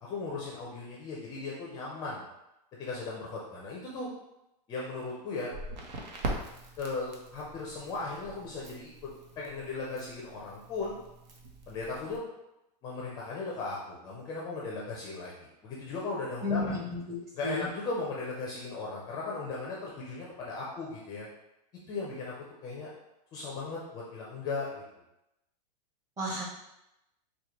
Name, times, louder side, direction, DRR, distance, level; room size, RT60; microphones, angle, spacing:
voice 1, 0.0-2.2 2.8-4.1 4.7-5.5 6.8-8.9 9.4-11.0 11.7-12.2 12.8-16.7 17.4-21.3 21.9-22.9 23.3-24.8, left 3 dB, 20° left, -4 dB, 0.4 m, -37 dB
Crackle, 5.5-12.2, right 2 dB, 85° right, 0.9 m, -42 dB
voice 2, 16.4-17.2 17.4-17.7 26.2-26.4, left 2 dB, 15° right, -4 dB, 0.8 m, -32 dB
4.7 x 2.2 x 2.9 m, 0.89 s
supercardioid pair, 160°, 21 cm